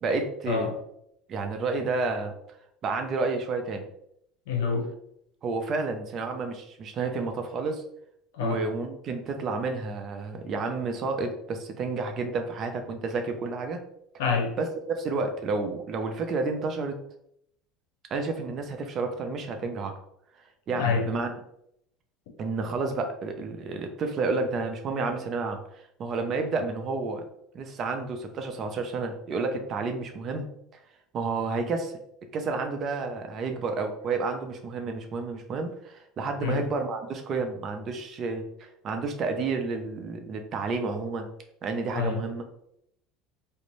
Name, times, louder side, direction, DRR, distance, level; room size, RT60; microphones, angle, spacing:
voice 1, 0.0-0.7 1.3-2.3 2.8-3.9 5.4-7.8 8.4-13.8 14.6-17.0 18.1-19.9 20.7-21.3 22.4-27.2 27.5-30.5 31.1-31.9 32.3-41.3 41.6-42.4, right 3 dB, 40° right, 5 dB, 0.4 m, -30 dB
voice 2, 4.5-4.9 8.3-8.6 14.2-14.5 20.7-21.1 36.4-36.6 41.9-42.2, left 5 dB, 85° left, 3 dB, 0.7 m, -26 dB
2.5 x 2.1 x 3.0 m, 0.74 s
supercardioid pair, 125°, 0 cm